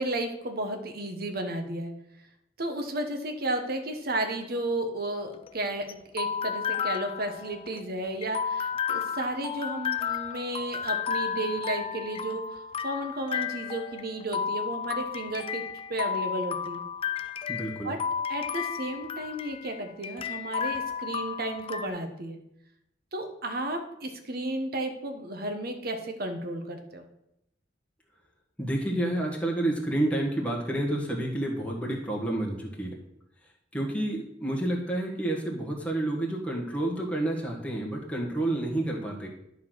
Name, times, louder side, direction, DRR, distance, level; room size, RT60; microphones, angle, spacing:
voice 1, 0.0-1.9 2.6-5.9 6.1-15.6 15.9-16.8 17.8-18.0 18.3-22.4 23.1-27.0, right 1 dB, 55° right, 5 dB, 1.2 m, -33 dB
sound 1, 5.2-21.9, left 7 dB, 30° left, 0.4 m, -33 dB
voice 2, 17.5-17.9 28.6-33.0 33.7-39.3, right 1 dB, 5° left, -2 dB, 1.6 m, -29 dB
11.0 x 4.0 x 6.3 m, 0.81 s
head